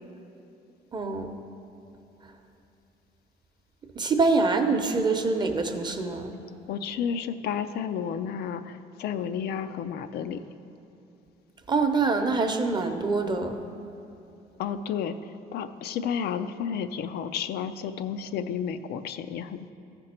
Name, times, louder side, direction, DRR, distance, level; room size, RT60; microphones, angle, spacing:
voice 1, 0.9-1.3 4.0-6.5 11.7-13.6, right 3 dB, 25° right, 5 dB, 0.7 m, -25 dB
voice 2, 6.7-10.4 14.6-15.2 15.5-19.7, left 7 dB, 70° left, 9 dB, 0.4 m, -31 dB
14.5 x 5.2 x 4.3 m, 2.9 s
cardioid pair, 110°, 17 cm